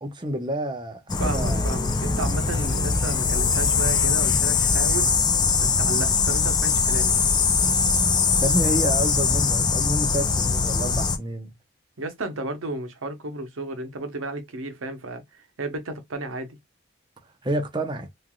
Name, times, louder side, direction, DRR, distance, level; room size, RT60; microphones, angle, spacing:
voice 1, 0.0-1.6 8.4-11.5 17.4-18.1, right 1 dB, 20° right, 0.6 m, -29 dB
sound 1, 1.1-11.2, left 5 dB, 20° left, 0.3 m, -22 dB
voice 2, 1.2-5.1 5.6-7.1 12.0-16.6, right 2 dB, 85° right, 0.8 m, -33 dB
3.2 x 2.5 x 2.2 m
head